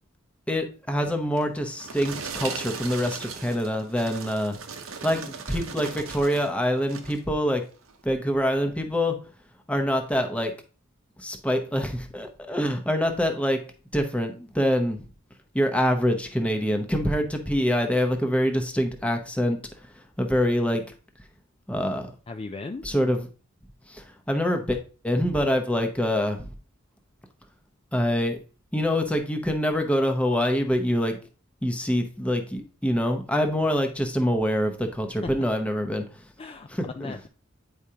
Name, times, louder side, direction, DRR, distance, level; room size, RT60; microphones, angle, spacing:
voice 1, 0.5-4.6 5.0-7.6 8.0-9.2 9.7-10.5 11.2-13.6 13.9-15.1 15.5-19.6 20.2-20.8 21.7-22.1 22.8-23.3 23.9-26.5 27.9-28.4 28.7-31.2 31.6-36.0 36.7-37.1, equal, 5° left, 4 dB, 0.8 m, -25 dB
sound 1, 1.4-6.5 6.8-7.3 7.8-8.0, right 5 dB, 90° right, 0.9 m, -38 dB
voice 2, 22.3-22.9 33.6-33.8 35.2-35.3 36.4-37.3, left 3 dB, 30° left, 6 dB, 0.4 m, -37 dB
8.9 x 4.9 x 2.8 m, 0.37 s
head